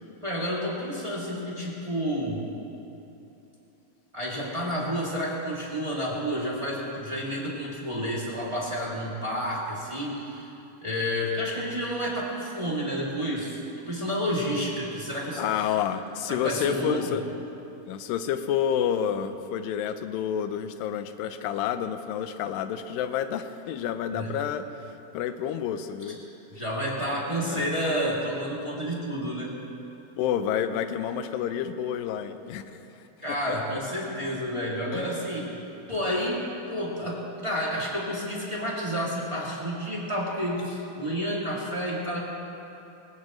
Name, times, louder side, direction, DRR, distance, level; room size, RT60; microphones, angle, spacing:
voice 1, 0.2-2.4 4.1-10.5 10.8-15.7 16.3-17.1 24.1-24.3 26.5-29.5 33.2-36.4 36.7-42.2, equal, 10° right, -5 dB, 1.7 m, -30 dB
voice 2, 15.4-17.2 17.9-26.2 27.4-27.7 30.2-32.8 33.5-33.6 34.9-35.1, left 9 dB, 75° left, 9 dB, 2.3 m, -29 dB
22.5 x 19.5 x 3.1 m, 2.9 s
omnidirectional pair, 4.4 m